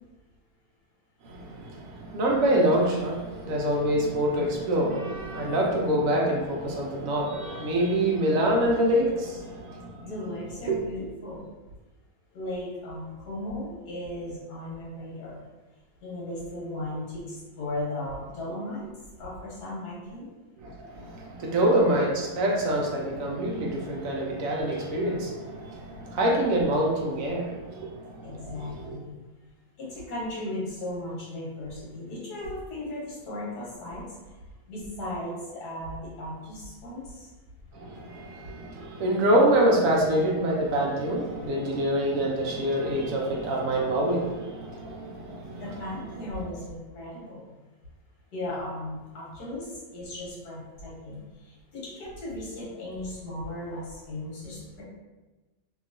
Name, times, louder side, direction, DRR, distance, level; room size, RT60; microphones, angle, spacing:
voice 1, 1.2-10.1 10.7-10.8 20.6-29.0 37.7-45.6, right 1 dB, 65° right, -2 dB, 0.9 m, -26 dB
voice 2, 10.0-11.4 12.3-15.4 16.0-18.9 19.2-20.3 28.2-29.2 29.8-34.4 34.7-37.3 45.6-47.5 48.3-54.8, left 1 dB, 85° left, -5 dB, 1.4 m, -36 dB
2.9 x 2.6 x 2.5 m, 1.2 s
omnidirectional pair, 1.6 m